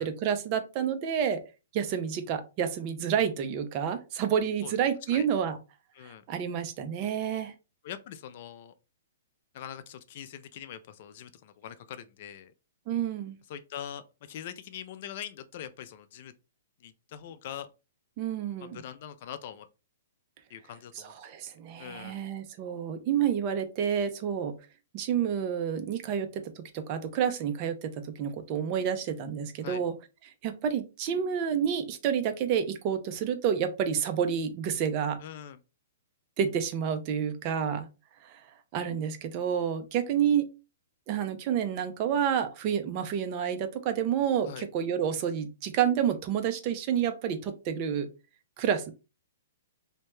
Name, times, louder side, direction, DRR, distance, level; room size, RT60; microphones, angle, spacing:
voice 1, 0.0-1.4 1.7-5.6 6.0-7.5 12.9-13.4 18.2-18.8 21.0-24.6 24.9-29.9 30.4-35.2 36.4-37.9 38.2-38.4 38.7-40.5 41.1-48.1 48.6-48.9, right 8 dB, 30° right, 0.4 m, -29 dB
voice 2, 7.8-8.7 9.5-12.5 13.5-16.3 16.8-17.7 18.6-19.7 20.5-21.1 21.8-22.2 29.6-29.8 35.2-35.6 44.5-44.7, left 9 dB, 45° left, 0.3 m, -42 dB
2.7 x 2.1 x 3.1 m
hypercardioid pair, 155°, 0 cm